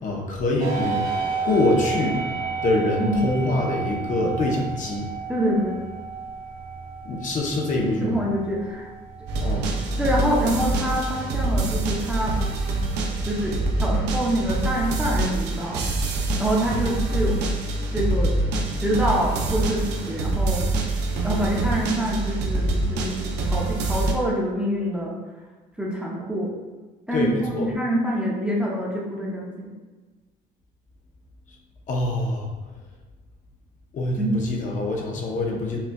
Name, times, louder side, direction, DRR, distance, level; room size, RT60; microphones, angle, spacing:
voice 1, 0.0-1.1 1.4-2.2 2.6-5.1 7.0-8.1 9.4-9.7 27.1-27.7 31.9-32.5 33.9-35.8, left 2 dB, 50° left, -1 dB, 0.8 m, -24 dB
sound 1, 0.6-14.2, right 5 dB, 60° right, 1.2 m, -33 dB
voice 2, 3.5-3.9 5.3-5.8 8.0-8.9 10.0-12.3 13.2-15.8 16.4-17.4 17.9-18.3 18.8-20.6 21.2-25.1 25.8-26.5 27.1-29.7 34.2-34.4, equal, 5° right, -4 dB, 0.7 m, -26 dB
sound 2, 9.3-24.1, right 2 dB, 85° right, 0.6 m, -25 dB
5.4 x 2.3 x 2.3 m, 1.3 s
cardioid pair, 110°, 17 cm